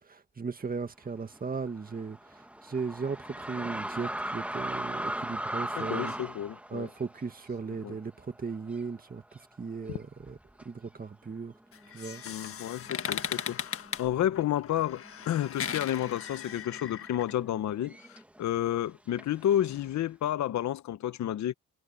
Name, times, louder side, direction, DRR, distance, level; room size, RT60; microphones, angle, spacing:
voice 1, 0.1-2.2 2.6-6.1 6.7-10.4 10.7-11.5 11.9-12.2, right 5 dB, 30° right, 2.0 m, -37 dB
sound 1, 1.3-9.0 9.3-9.4 10.2-10.6 11.4-11.5 11.8-13.5 13.8-14.4 14.6-18.4 19.2-20.0, right 1 dB, 5° right, 1.5 m, -39 dB
voice 2, 5.8-6.9 7.8-7.9 9.9-10.0 12.2-21.5, left 11 dB, 70° left, 1.1 m, -31 dB
Creaking door, 11.7-17.3, left 8 dB, 50° left, 1.5 m, -38 dB
cardioid pair, 90°, 30 cm